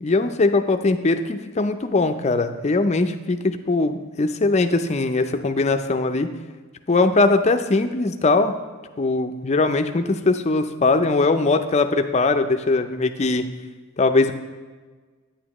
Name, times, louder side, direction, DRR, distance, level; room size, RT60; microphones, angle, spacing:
voice 1, 0.0-6.3 6.9-8.5 9.0-13.4 14.0-14.3, left 3 dB, 30° left, 7 dB, 0.4 m, -20 dB
9.6 x 8.5 x 3.0 m, 1.4 s
head